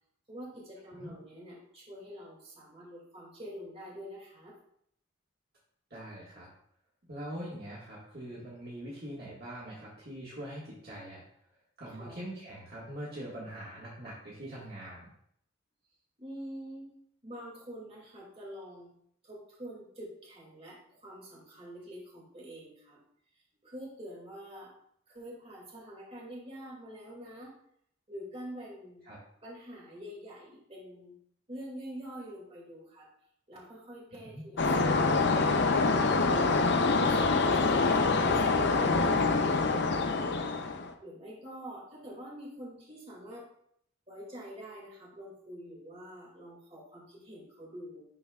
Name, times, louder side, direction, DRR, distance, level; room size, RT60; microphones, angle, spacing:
voice 1, 0.3-4.6 12.0-12.2 16.2-16.9 17.2-18.9 19.2-23.0 23.6-24.7 25.1-27.5 28.1-29.0 29.4-31.1 31.5-33.1 33.5-35.4 36.1-40.5 41.0-43.5 44.1-48.0, equal, 30° right, -3 dB, 2.2 m, -46 dB
voice 2, 5.9-6.5 7.0-11.2 11.8-15.1 29.1-29.2 34.2-34.4, right 1 dB, 50° right, -7 dB, 1.7 m, -43 dB
sound 1, 34.6-40.9, left 3 dB, 60° left, 0.6 m, -25 dB
11.0 x 4.2 x 2.4 m, 0.68 s
head